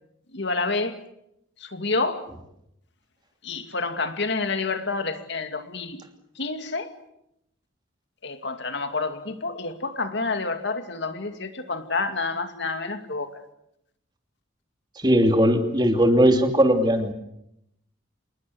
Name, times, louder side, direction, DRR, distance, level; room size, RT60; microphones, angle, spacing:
voice 1, 0.3-0.9 1.7-2.2 3.5-6.0 6.4-6.9 8.2-13.3, left 3 dB, 60° left, 2.4 m, -28 dB
voice 2, 15.0-17.1, equal, 20° right, 2.7 m, -19 dB
27.5 x 20.5 x 7.9 m
head